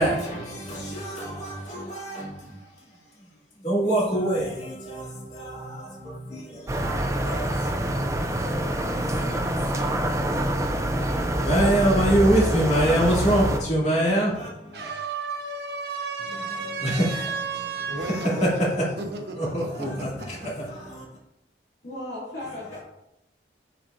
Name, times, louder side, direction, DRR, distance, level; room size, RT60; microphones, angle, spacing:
voice 1, 0.0-2.7 3.6-10.1 11.5-14.8 16.8-17.3 18.0-19.0 19.3-21.0, right 1 dB, 40° left, 2.3 m, -26 dB
sound 1, 6.7-13.6, right 1 dB, 15° right, 0.5 m, -26 dB
voice 2, 14.7-18.7 19.0-19.9, right 4 dB, 65° right, 0.9 m, -32 dB
voice 3, 21.8-22.8, left 1 dB, 65° left, 2.4 m, -35 dB
7.4 x 5.8 x 2.6 m
head